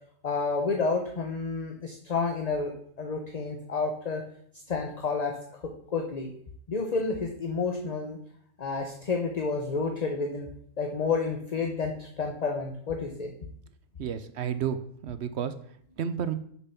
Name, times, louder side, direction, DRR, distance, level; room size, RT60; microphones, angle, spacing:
voice 1, 0.2-4.2 4.7-5.4 5.9-6.3 6.7-8.2 8.6-10.5 10.8-13.3, left 4 dB, 35° left, 3 dB, 0.8 m, -30 dB
voice 2, 14.0-15.5 16.0-16.3, right 8 dB, 60° right, 12 dB, 0.9 m, -31 dB
6.6 x 6.1 x 5.8 m, 0.64 s
omnidirectional pair, 1.3 m